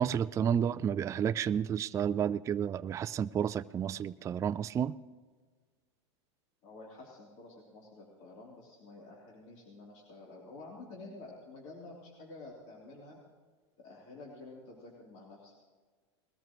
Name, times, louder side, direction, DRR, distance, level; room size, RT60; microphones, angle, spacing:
voice 1, 0.0-4.9, right 8 dB, 20° right, 13 dB, 0.3 m, -31 dB
voice 2, 6.6-13.2 13.8-15.5, left 2 dB, 50° left, -4 dB, 3.4 m, -50 dB
20.5 x 13.5 x 3.1 m, 1.4 s
hypercardioid pair, 110°, 15 cm